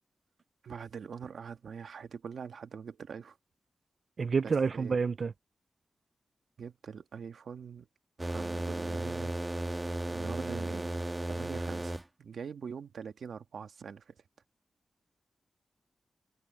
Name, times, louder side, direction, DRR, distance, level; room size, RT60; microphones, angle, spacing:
voice 1, 0.6-3.4 4.4-4.9 6.6-7.9 8.2-9.3 10.1-10.9 11.3-11.9 12.2-14.1, right 6 dB, 85° right, 1.6 m, -43 dB
voice 2, 4.2-5.3, right 5 dB, 55° right, 0.3 m, -28 dB
sound 1, 8.2-12.0, right 1 dB, 15° right, 1.4 m, -35 dB
wide cardioid pair, 120°, 0 cm